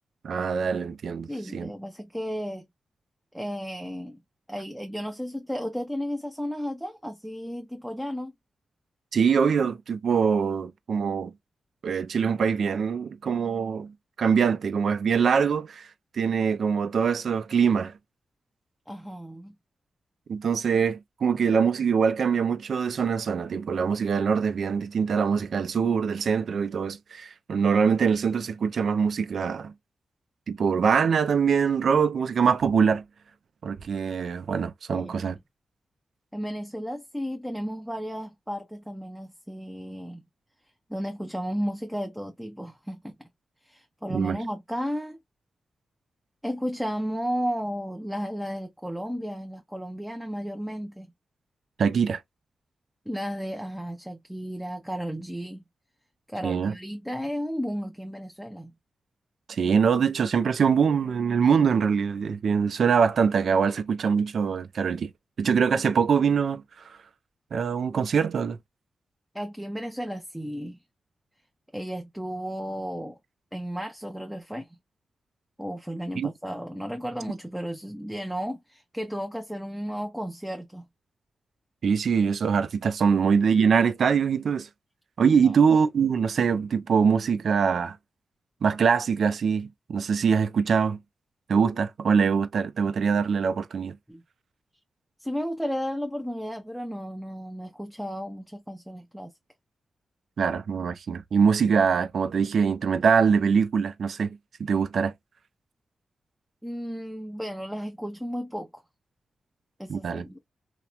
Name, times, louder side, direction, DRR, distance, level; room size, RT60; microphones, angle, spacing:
voice 1, 0.2-1.7 9.1-11.3 11.8-15.9 16.1-17.9 20.3-29.7 30.5-33.0 33.6-35.4 44.1-44.4 51.8-52.2 56.4-56.7 59.5-65.1 65.4-66.6 67.5-68.6 76.2-76.3 81.8-84.7 85.2-88.0 88.6-91.0 91.5-94.0 100.4-105.1 109.9-110.2, right 6 dB, 70° right, 0.3 m, -23 dB
voice 2, 1.3-2.7 3.3-4.2 4.5-8.3 18.9-19.6 34.9-35.2 36.3-40.2 40.9-43.1 43.6-45.2 46.4-51.1 53.1-55.6 56.3-58.7 69.3-70.8 71.7-73.2 73.5-74.8 75.6-80.9 85.4-85.6 94.1-94.2 95.2-99.3 106.6-108.8 109.8-110.4, equal, 5° right, 0.5 m, -33 dB
2.9 x 2.0 x 2.3 m
cardioid pair, 75°, 0 cm